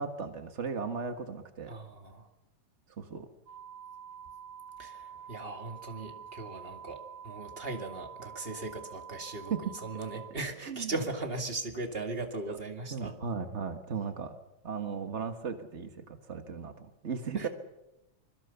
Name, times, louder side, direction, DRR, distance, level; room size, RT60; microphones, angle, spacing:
voice 1, 0.0-1.7 3.0-3.3 9.5-9.6 10.6-10.9 12.5-12.6 12.9-14.4 14.6-17.5, right 5 dB, 90° right, 7 dB, 0.6 m, -36 dB
voice 2, 1.7-2.3 4.8-13.2 17.3-17.5, right 2 dB, 20° right, 5 dB, 2.0 m, -38 dB
sound 1, 3.5-10.3, right 8 dB, 55° right, 3.2 m, -47 dB
25.5 x 22.5 x 7.0 m, 0.89 s
omnidirectional pair, 3.8 m